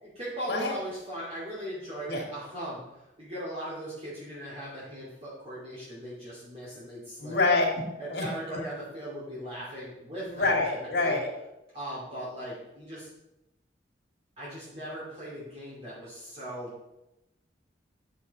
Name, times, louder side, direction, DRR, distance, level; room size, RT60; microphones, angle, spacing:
voice 1, 0.0-7.5 8.0-10.6 11.0-11.2 11.7-13.1 14.4-16.7, right 1 dB, 35° right, -8 dB, 2.6 m, -39 dB
voice 2, 7.2-7.7 8.1-8.2 10.2-11.3, left 3 dB, 65° left, 0 dB, 2.2 m, -26 dB
8.9 x 7.0 x 4.1 m, 0.91 s
head